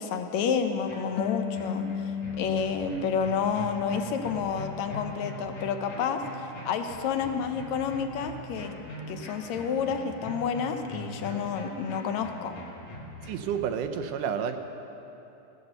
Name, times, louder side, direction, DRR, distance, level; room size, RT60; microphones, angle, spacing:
voice 1, 0.0-8.7 9.1-12.5, left 6 dB, 70° left, 7 dB, 1.8 m, -30 dB
sound 1, 0.8-13.5, left 1 dB, 55° left, 2.7 m, -42 dB
Harp, 1.2-4.6 4.9-6.0, left 8 dB, 85° left, 1.6 m, -37 dB
voice 2, 13.2-14.6, right 8 dB, 80° right, 7 dB, 2.2 m, -30 dB
17.0 x 12.5 x 6.7 m, 3.0 s
omnidirectional pair, 3.8 m